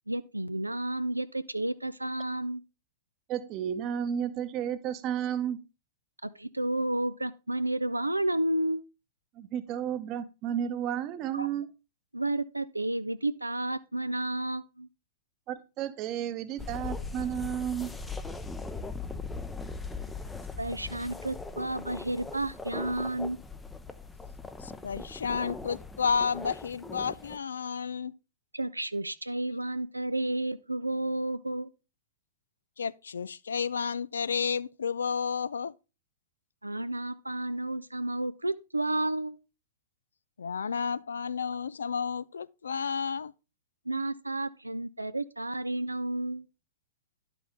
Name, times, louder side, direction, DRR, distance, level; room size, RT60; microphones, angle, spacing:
voice 1, 0.1-2.6 6.2-8.8 11.3-11.5 12.1-14.9 20.6-23.4 28.5-31.7 36.6-39.4 43.9-46.5, right 1 dB, 85° right, 0.4 m, -31 dB
voice 2, 3.3-5.6 9.4-11.7 15.5-17.9, right 9 dB, 35° right, 0.9 m, -32 dB
sound 1, 16.6-27.4, left 4 dB, 10° left, 0.6 m, -40 dB
voice 3, 24.6-28.1 32.8-35.7 40.4-43.3, left 6 dB, 70° left, 0.3 m, -31 dB
11.0 x 5.9 x 3.5 m
figure-of-eight pair, 105°, 0 cm